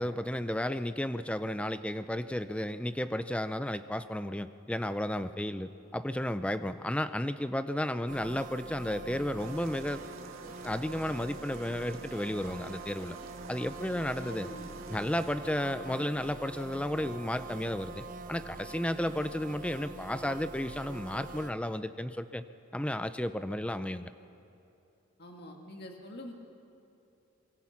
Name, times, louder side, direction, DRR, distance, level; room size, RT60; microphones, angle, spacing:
voice 1, 0.0-10.0 10.6-13.2 13.5-14.5 14.9-22.4 22.7-24.1, left 1 dB, 5° left, 12 dB, 0.5 m, -33 dB
sound 1, 8.1-21.5, right 3 dB, 35° right, 1.0 m, -44 dB
sound 2, 9.4-15.4, right 3 dB, 65° right, 1.8 m, -50 dB
voice 2, 14.2-14.7 25.2-26.3, left 1 dB, 45° left, 2 dB, 2.1 m, -45 dB
25.0 x 23.0 x 5.9 m, 2.8 s
head